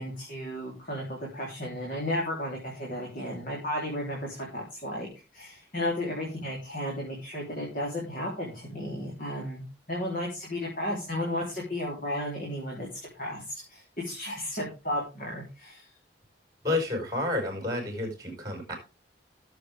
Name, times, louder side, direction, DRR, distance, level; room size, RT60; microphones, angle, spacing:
voice 1, 0.0-12.9 13.1-15.9, left 1 dB, 50° left, -3 dB, 3.7 m, -34 dB
voice 2, 16.6-18.8, left 2 dB, 20° right, 4 dB, 5.1 m, -30 dB
17.0 x 7.6 x 3.6 m, 0.29 s
head